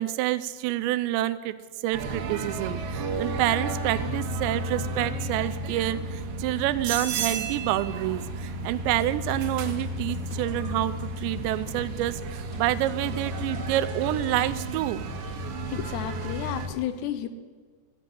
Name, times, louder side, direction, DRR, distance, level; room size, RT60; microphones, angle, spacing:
voice 1, 0.0-1.5 1.8-15.0 15.3-15.5 15.7-15.8, right 14 dB, 80° right, 12 dB, 2.7 m, -28 dB
sound 1, 1.9-16.7, right 2 dB, 65° right, 2.6 m, -32 dB
sound 2, 9.3-14.7, right 1 dB, 40° left, 1.1 m, -43 dB
voice 2, 15.7-17.3, left 10 dB, 75° left, 11 dB, 2.8 m, -32 dB
14.5 x 7.7 x 9.8 m, 1.4 s
omnidirectional pair, 5.3 m